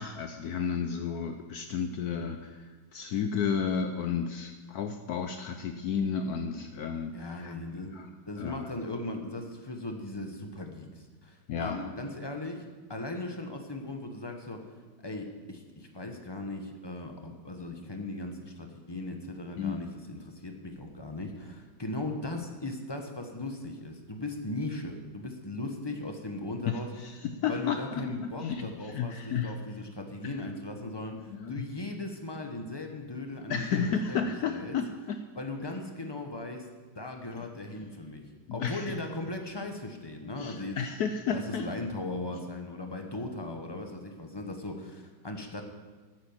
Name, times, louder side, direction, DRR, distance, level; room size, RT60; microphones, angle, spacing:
voice 1, 0.0-7.5 7.9-8.1 8.4-8.7 11.5-11.8 19.6-19.8 26.7-28.1 28.4-29.5 30.2-30.3 31.3-31.5 33.5-35.2 37.4-37.5 38.5-39.0 40.4-41.7, left 6 dB, 70° left, 7 dB, 1.1 m, -32 dB
voice 2, 7.1-8.0 8.3-14.7 15.0-26.9 27.5-34.8 35.3-36.7 36.9-38.2 38.5-40.8 41.3-45.6, left 2 dB, 20° left, 4 dB, 0.8 m, -38 dB
9.6 x 7.9 x 7.1 m, 1.4 s
omnidirectional pair, 1.9 m